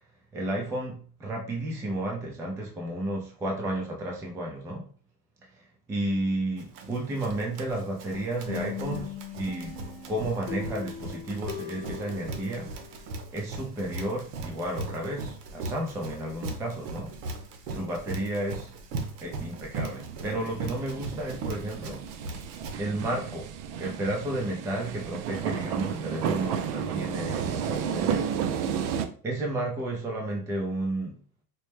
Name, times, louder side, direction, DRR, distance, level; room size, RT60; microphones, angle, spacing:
voice 1, 0.3-4.9 5.5-9.8 10.1-12.7 13.3-17.1 17.7-18.7 19.2-22.1 22.8-23.5 23.8-28.5 29.2-31.2, right 1 dB, 5° right, 0 dB, 0.3 m, -32 dB
Run, 6.6-22.8, right 3 dB, 90° right, 0.9 m, -39 dB
sound 1, 8.5-13.2, left 10 dB, 90° left, 0.8 m, -39 dB
sound 2, 19.9-29.1, right 8 dB, 60° right, 0.6 m, -32 dB
4.3 x 2.1 x 3.2 m, 0.41 s
supercardioid pair, 135°, 46 cm